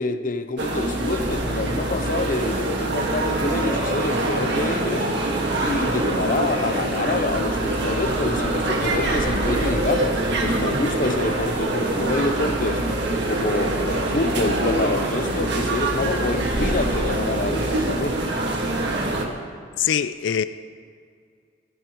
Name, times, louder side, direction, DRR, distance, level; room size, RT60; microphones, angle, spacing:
voice 1, 0.0-5.1 5.6-12.8 13.3-18.2, left 2 dB, 45° left, 0.6 m, -27 dB
sound 1, 0.6-19.3, right 2 dB, 70° right, 1.7 m, -24 dB
voice 2, 19.8-20.4, left 9 dB, 85° left, 0.4 m, -22 dB
27.0 x 11.0 x 3.0 m
head